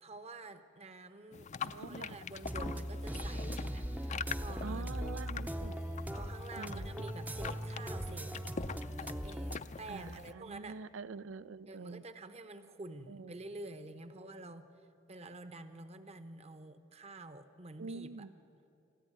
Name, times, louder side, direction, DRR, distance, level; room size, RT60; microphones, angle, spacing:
voice 1, 0.0-4.9 6.1-8.4 9.0-10.8 11.7-14.7 15.1-18.3, right 2 dB, 35° right, 10 dB, 0.9 m, -48 dB
sound 1, 1.3-10.3, left 5 dB, 35° left, 0.5 m, -44 dB
voice 2, 1.6-2.1 4.6-5.8 6.5-7.0 9.9-12.0 13.1-13.3 17.8-18.3, right 4 dB, 75° right, 18 dB, 0.5 m, -45 dB
sound 2, 2.4-9.6, equal, 10° right, 0.7 m, -39 dB
26.0 x 14.0 x 9.7 m, 2.8 s
head